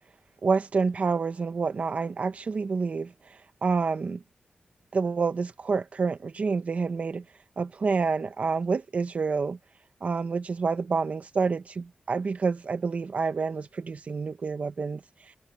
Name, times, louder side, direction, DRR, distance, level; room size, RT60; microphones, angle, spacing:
voice 1, 0.4-3.1 3.6-4.2 4.9-7.2 7.6-9.6 10.0-15.0, right 4 dB, 50° right, 1.1 m, -28 dB
wide cardioid pair, 160°, 3 cm